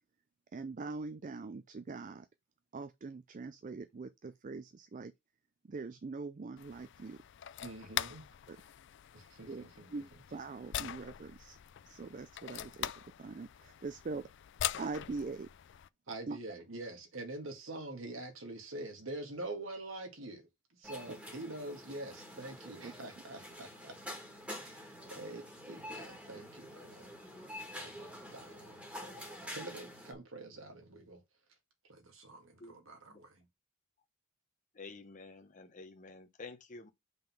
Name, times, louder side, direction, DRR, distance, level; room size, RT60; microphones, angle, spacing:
voice 1, 0.5-2.3 2.7-5.1 5.7-7.2 8.5-8.6 9.5-9.6 9.9-11.6 11.9-14.3 14.8-15.5 16.3-16.4 22.8-22.9, right 4 dB, 40° right, 0.4 m, -42 dB
sound 1, 6.6-15.9, left 11 dB, 60° left, 0.4 m, -43 dB
voice 2, 7.6-8.2 9.1-10.0 16.1-24.2 24.6-27.1 27.7-31.2 31.5-31.6 31.8-33.5, right 2 dB, 75° right, 2.0 m, -46 dB
sound 2, 20.8-30.1, left 1 dB, 5° right, 1.8 m, -47 dB
voice 3, 34.7-36.9, left 3 dB, 40° left, 0.9 m, -50 dB
5.3 x 3.8 x 5.9 m
head